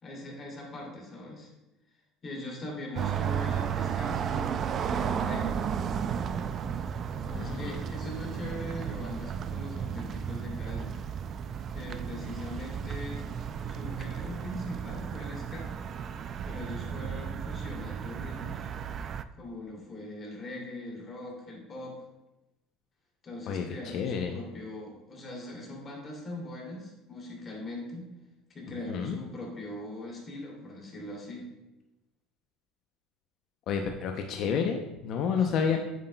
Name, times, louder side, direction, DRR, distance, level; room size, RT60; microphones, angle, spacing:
voice 1, 0.0-1.5 2.2-4.5 4.8-5.6 7.1-11.0 11.7-13.3 13.5-15.7 16.4-18.7 19.4-21.9 23.2-28.1 28.5-31.4 35.4-35.8, left 1 dB, 35° left, -1 dB, 2.7 m, -41 dB
sound 1, 3.0-19.2, right 7 dB, 40° right, 0.3 m, -34 dB
voice 2, 7.3-7.8 23.5-24.4 28.9-29.2 33.7-35.8, left 6 dB, 55° left, 4 dB, 0.6 m, -30 dB
8.4 x 7.5 x 2.2 m, 0.99 s
supercardioid pair, 105°, 0 cm